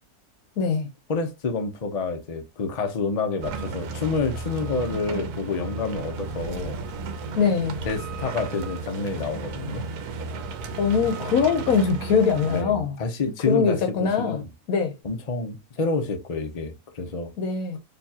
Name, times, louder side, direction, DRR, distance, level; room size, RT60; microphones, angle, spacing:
voice 1, 0.6-0.9 7.3-7.8 10.8-13.0 13.5-14.4 14.7-14.9 17.4-17.8, left 6 dB, 70° left, 1.1 m, -22 dB
voice 2, 1.1-6.8 7.8-9.9 12.4-14.5 15.0-17.3, left 4 dB, 40° left, 0.6 m, -28 dB
sound 1, 3.4-12.6, right 3 dB, 80° right, 1.2 m, -34 dB
4.5 x 3.0 x 2.7 m
omnidirectional pair, 1.6 m